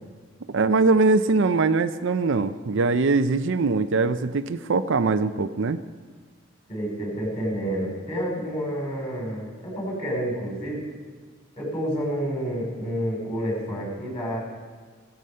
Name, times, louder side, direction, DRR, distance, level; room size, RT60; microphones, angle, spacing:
voice 1, 0.5-5.8, right 3 dB, 55° right, 10 dB, 0.5 m, -22 dB
voice 2, 6.7-10.8 11.6-14.4, equal, 25° left, -3 dB, 6.1 m, -29 dB
17.0 x 14.0 x 5.5 m, 1.5 s
head